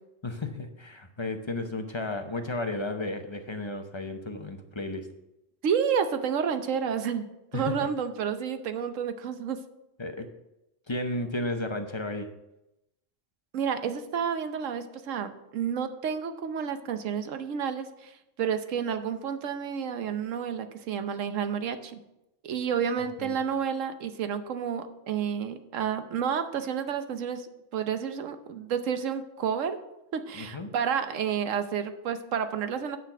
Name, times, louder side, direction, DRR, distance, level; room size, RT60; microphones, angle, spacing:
voice 1, 0.2-5.1 7.5-7.9 10.0-10.3 10.9-12.3 23.2-23.4 30.3-30.7, left 2 dB, 30° left, 5 dB, 0.7 m, -33 dB
voice 2, 5.6-9.6 13.5-18.1 18.4-22.0 22.4-29.8 30.1-33.0, right 7 dB, 90° right, 9 dB, 1.2 m, -30 dB
9.4 x 5.9 x 5.8 m, 0.90 s
omnidirectional pair, 1.3 m